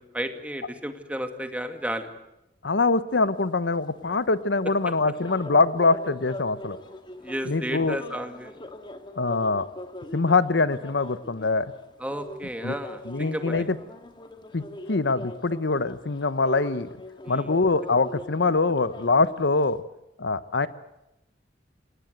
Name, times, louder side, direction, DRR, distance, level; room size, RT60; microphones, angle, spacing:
voice 1, 0.0-2.1 7.2-8.7 12.0-13.7 17.2-17.5 20.6-20.7, equal, 10° right, 7 dB, 2.2 m, -33 dB
voice 2, 2.6-6.8 7.5-8.0 9.2-9.7 10.1-11.7 12.6-12.7 13.1-13.7 14.5-16.9 17.3-19.8 20.2-20.7, left 3 dB, 70° left, 15 dB, 0.9 m, -24 dB
sound 1, 3.1-19.8, left 1 dB, 25° left, 2.0 m, -42 dB
28.0 x 18.0 x 9.2 m, 0.89 s
head